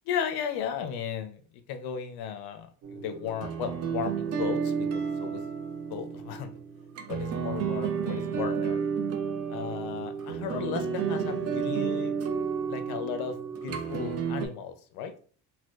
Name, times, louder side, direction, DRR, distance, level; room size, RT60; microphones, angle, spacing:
voice 1, 0.0-1.4 1.7-5.4 5.9-6.5 7.1-8.8 9.5-12.1 12.7-15.1, left 7 dB, 80° left, 7 dB, 0.7 m, -35 dB
sound 1, 2.8-14.5, right 6 dB, 45° right, 0.5 m, -31 dB
4.2 x 2.2 x 2.4 m, 0.43 s
cardioid pair, 160°, 37 cm